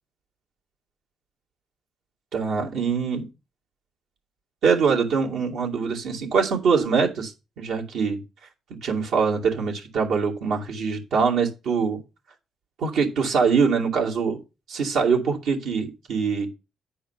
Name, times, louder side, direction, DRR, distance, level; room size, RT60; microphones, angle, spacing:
voice 1, 2.3-3.3 4.6-8.2 8.8-12.0 12.8-14.4 14.7-16.5, right 5 dB, 80° right, 2.5 m, -23 dB
10.0 x 4.6 x 5.9 m
cardioid pair, 90°, 0 cm